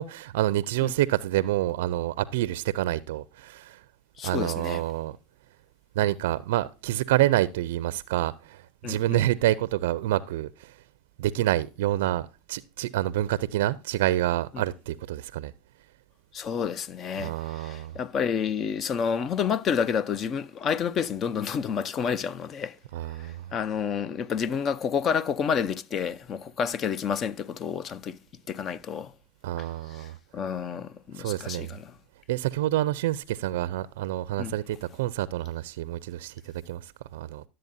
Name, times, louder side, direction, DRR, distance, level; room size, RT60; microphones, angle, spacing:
voice 1, 0.0-3.8 4.2-5.2 6.0-10.8 11.2-15.5 17.2-18.0 22.9-23.5 29.4-30.2 31.1-31.8 32.3-37.4, right 14 dB, 80° right, 0.4 m, -28 dB
voice 2, 4.2-4.8 8.8-9.2 16.3-22.8 23.2-28.2 28.5-29.1 30.0-30.1 30.3-31.9 34.4-34.5, left 7 dB, 35° left, 0.6 m, -29 dB
12.0 x 7.6 x 2.6 m
supercardioid pair, 110°, 0 cm